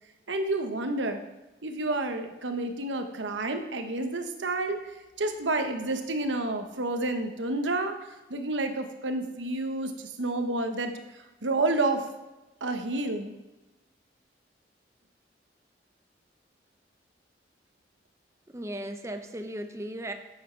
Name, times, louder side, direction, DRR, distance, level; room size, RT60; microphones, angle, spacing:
voice 1, 0.3-1.2 1.6-4.8 5.2-7.9 8.3-10.9 11.4-12.1 12.6-13.4, right 2 dB, 90° right, 6 dB, 1.1 m, -29 dB
voice 2, 18.5-20.1, right 1 dB, 15° right, 6 dB, 0.6 m, -36 dB
10.5 x 7.9 x 4.6 m, 1.1 s
head